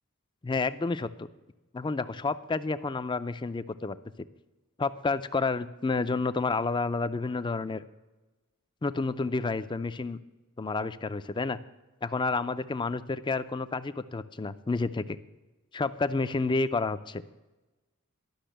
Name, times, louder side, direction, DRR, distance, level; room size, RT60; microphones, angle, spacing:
voice 1, 0.4-1.3 1.7-4.0 4.8-7.8 8.8-10.2 10.6-11.6 12.0-15.2 15.7-17.2, left 3 dB, 20° left, 14 dB, 0.4 m, -30 dB
12.0 x 6.2 x 9.0 m, 1.1 s
head